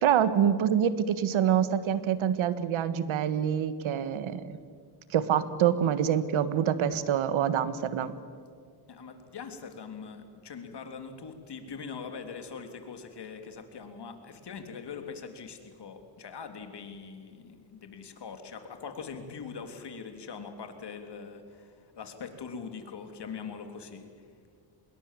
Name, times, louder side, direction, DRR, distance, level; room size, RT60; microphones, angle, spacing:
voice 1, 0.0-4.5 5.1-8.1, right 9 dB, 75° right, 13 dB, 1.5 m, -26 dB
voice 2, 8.9-24.3, left 5 dB, 55° left, 6 dB, 3.2 m, -42 dB
26.0 x 21.5 x 7.5 m, 2.1 s
cardioid pair, 85°, 48 cm